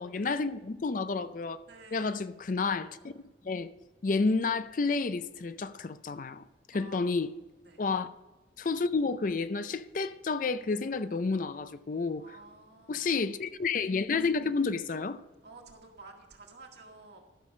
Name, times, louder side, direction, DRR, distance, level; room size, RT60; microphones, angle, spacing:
voice 1, 0.0-1.6 1.9-3.1 3.4-3.7 4.0-7.3 7.8-8.1 8.6-12.4 12.9-15.2, left 4 dB, 45° left, 0.4 m, -30 dB
voice 2, 1.7-2.2 6.7-7.1 7.6-7.8 12.2-13.2 15.4-17.2, right 3 dB, 60° right, 2.0 m, -52 dB
12.5 x 6.8 x 5.3 m
head